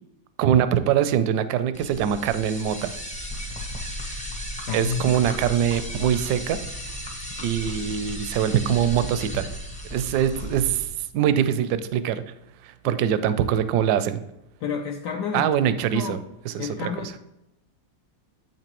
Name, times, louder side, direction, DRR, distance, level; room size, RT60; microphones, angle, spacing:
voice 1, 0.4-2.9 4.7-6.6 7.4-9.4 9.9-12.2 12.6-14.2 15.3-16.2 16.5-17.1, right 9 dB, 75° right, 12 dB, 1.0 m, -23 dB
sound 1, 1.7-10.8, equal, 10° left, 0.3 m, -35 dB
voice 2, 4.7-5.2 12.8-13.0 14.6-15.5 15.9-16.2 16.6-17.2, left 6 dB, 70° left, 2 dB, 1.1 m, -30 dB
8.1 x 6.0 x 3.0 m, 0.88 s
omnidirectional pair, 2.0 m